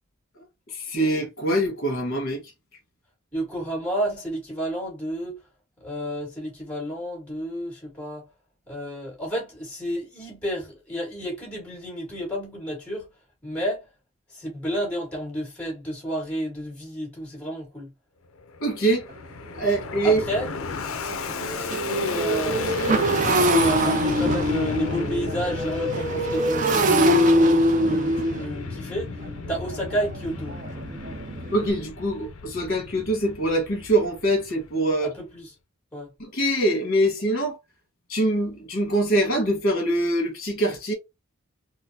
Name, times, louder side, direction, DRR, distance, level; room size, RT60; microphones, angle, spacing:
voice 1, 0.7-2.4 18.6-19.0 19.5-20.2 31.5-35.1 36.2-37.6 38.1-40.9, right 1 dB, 45° left, 1.3 m, -24 dB
voice 2, 3.3-5.4 5.8-8.3 8.7-13.1 13.4-13.8 14.3-17.9 20.0-20.5 21.0-29.2 29.5-30.6 35.0-35.5 35.9-36.1, equal, 5° left, 1.8 m, -31 dB
Fixed-wing aircraft airplane, 18.4-35.0, left 4 dB, 70° left, 0.4 m, -34 dB
Motorcycle, 19.1-19.2 19.7-19.8 20.1-31.7, right 1 dB, 35° right, 0.4 m, -24 dB
3.9 x 2.1 x 2.7 m
head